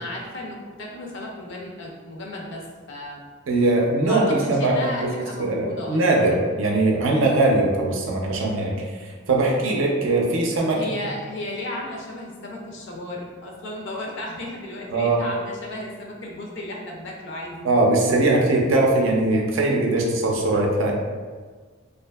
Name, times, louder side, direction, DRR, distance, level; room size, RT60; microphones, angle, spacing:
voice 1, 0.0-2.6 2.9-3.2 4.0-6.3 10.7-17.7, left 1 dB, 65° left, -1 dB, 0.5 m, -34 dB
voice 2, 3.5-5.1 5.4-10.8 14.9-15.2 17.6-20.9, right 2 dB, 70° right, -1 dB, 0.4 m, -21 dB
2.6 x 2.4 x 2.2 m, 1.5 s
head